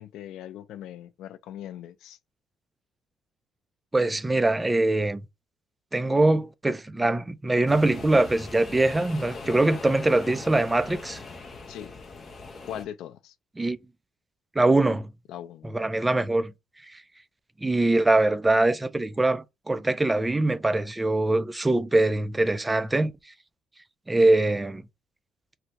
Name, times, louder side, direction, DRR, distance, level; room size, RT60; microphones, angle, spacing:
voice 1, 0.0-2.2 11.7-11.9 12.6-13.3 15.3-15.7 16.0-16.1, left 11 dB, 85° left, 0.3 m, -40 dB
voice 2, 3.9-5.2 5.9-11.2 13.6-13.8 14.6-15.1 15.7-16.5 16.9-17.0 17.6-23.1 24.1-24.8, right 2 dB, 15° right, 0.3 m, -23 dB
sound 1, 7.7-12.8, left 3 dB, 35° left, 0.7 m, -40 dB
3.3 x 2.6 x 2.9 m
cardioid pair, 140°, 0 cm